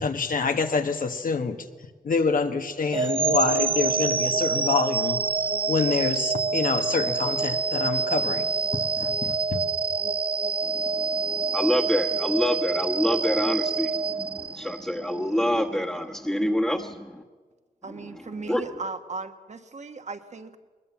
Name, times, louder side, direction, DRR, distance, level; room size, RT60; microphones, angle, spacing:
voice 1, 0.0-1.6 2.0-5.2 5.7-8.5 8.7-9.6, left 5 dB, 75° left, 7 dB, 1.6 m, -26 dB
sound 1, 2.9-15.0, right 4 dB, 40° right, 0.6 m, -26 dB
voice 2, 10.6-17.2 17.9-18.6, equal, 5° left, -3 dB, 1.4 m, -27 dB
voice 3, 17.8-20.6, right 4 dB, 55° right, 8 dB, 1.4 m, -37 dB
21.5 x 20.5 x 7.4 m, 1.4 s
wide cardioid pair, 95°, 14 cm